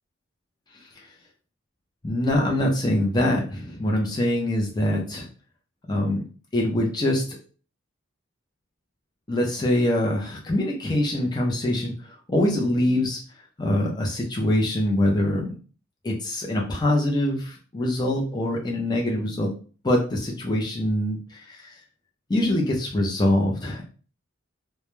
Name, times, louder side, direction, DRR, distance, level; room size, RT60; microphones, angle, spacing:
voice 1, 2.0-5.3 5.9-6.2 6.5-7.2 9.3-13.2 13.6-15.6 16.0-19.5 19.8-21.6 22.3-23.9, left 1 dB, 20° left, -2 dB, 0.5 m, -24 dB
2.3 x 2.0 x 3.0 m, 0.38 s
head